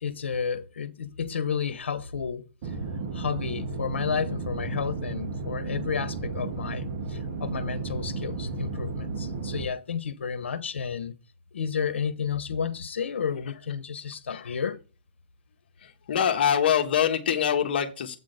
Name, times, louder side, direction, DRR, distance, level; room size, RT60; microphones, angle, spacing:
voice 1, 0.0-2.8 3.1-11.1 11.5-14.8, left 6 dB, 90° left, 1.1 m, -31 dB
sound 1, 2.6-9.7, right 4 dB, 45° right, 1.2 m, -33 dB
voice 2, 15.8-18.2, left 8 dB, 60° left, 1.3 m, -24 dB
8.1 x 3.8 x 6.6 m
hypercardioid pair, 155°, 6 cm